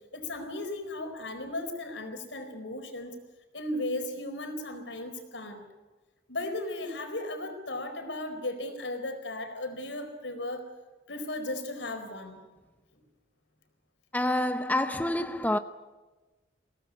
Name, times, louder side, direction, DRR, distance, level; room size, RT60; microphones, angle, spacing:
voice 1, 0.1-3.2 3.5-5.6 6.3-10.6 11.1-12.4, left 1 dB, 85° left, 4.4 m, -36 dB
voice 2, 14.1-15.6, left 1 dB, 10° left, 0.7 m, -27 dB
22.5 x 17.5 x 9.6 m
head